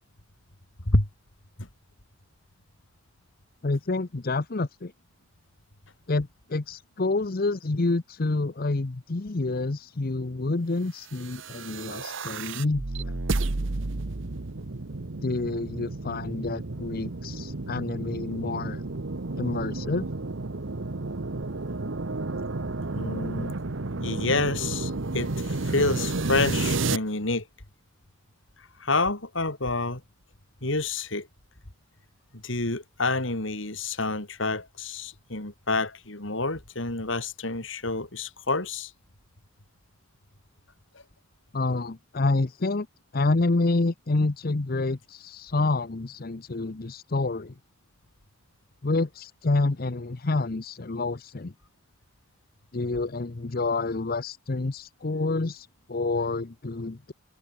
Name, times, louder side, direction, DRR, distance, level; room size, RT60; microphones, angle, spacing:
voice 1, 3.6-4.9 6.1-13.2 15.2-18.8 19.4-20.1 41.5-42.9 43.1-47.5 48.8-51.5 52.7-57.1, left 3 dB, 45° left, 0.8 m, -28 dB
sound 1, 11.2-27.0, right 3 dB, 70° right, 1.1 m, -31 dB
voice 2, 22.9-23.5 24.0-27.5 28.8-30.0 30.6-31.3 32.3-38.9, left 3 dB, 70° left, 3.5 m, -28 dB
head